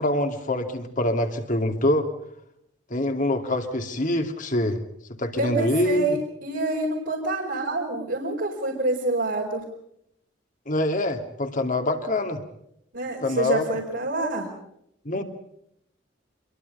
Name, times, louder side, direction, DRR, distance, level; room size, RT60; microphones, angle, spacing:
voice 1, 0.0-2.1 2.9-4.8 5.2-6.2 10.7-12.4 13.2-13.7 15.0-15.2, left 1 dB, 45° left, 5 dB, 2.7 m, -25 dB
voice 2, 5.4-9.6 12.9-14.5, right 2 dB, 70° right, -3 dB, 5.0 m, -27 dB
27.5 x 23.0 x 5.5 m, 0.76 s
head